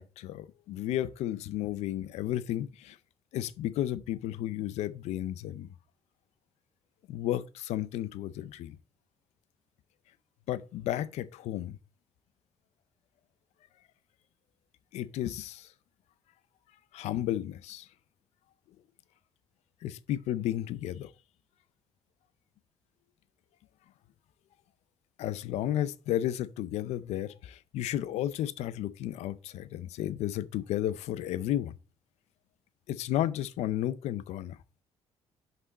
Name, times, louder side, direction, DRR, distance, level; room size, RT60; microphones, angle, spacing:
voice 1, 0.0-3.0 3.3-5.7 7.1-8.8 10.5-11.8 14.9-15.7 16.9-17.9 19.8-21.1 25.2-31.7 32.9-34.6, left 12 dB, 85° left, 0.5 m, -33 dB
6.1 x 5.6 x 4.0 m
cardioid pair, 95°, 11 cm